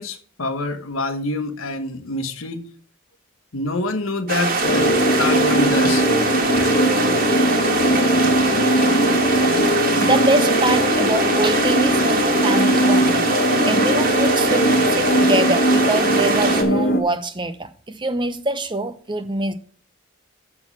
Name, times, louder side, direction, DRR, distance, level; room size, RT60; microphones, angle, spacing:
voice 1, 0.0-2.6 3.5-6.1, left 2 dB, 85° left, 1.3 m, -26 dB
sound 1, 4.3-16.6, right 4 dB, 45° right, 1.5 m, -23 dB
sound 2, 4.6-17.0, equal, 45° left, 1.2 m, -19 dB
voice 2, 10.0-13.3 13.6-19.5, right 2 dB, 25° right, 0.7 m, -24 dB
6.6 x 6.1 x 7.3 m
head